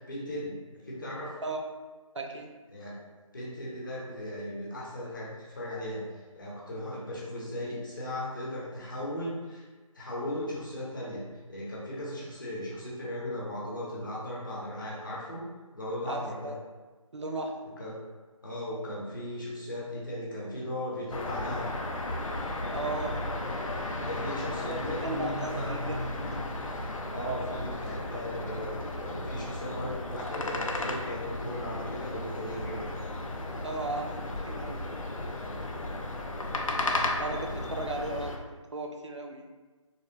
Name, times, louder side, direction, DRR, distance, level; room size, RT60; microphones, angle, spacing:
voice 1, 0.1-0.6 0.8-1.4 2.7-3.0 3.3-6.0 6.3-9.6 9.9-15.4 15.7-16.5 17.8-17.9 18.4-21.7 23.9-25.1 25.4-25.7 27.1-32.8, left 1 dB, 35° left, -5 dB, 0.8 m, -37 dB
voice 2, 2.1-2.5 16.0-16.6 17.1-17.6 22.7-23.2 24.7-26.4 33.6-34.1 34.5-34.9 37.2-39.5, right 2 dB, 55° right, 3 dB, 0.4 m, -36 dB
sound 1, 21.1-38.4, left 2 dB, 70° left, 0.5 m, -34 dB
3.2 x 2.5 x 2.7 m, 1.3 s
figure-of-eight pair, 170°, 18 cm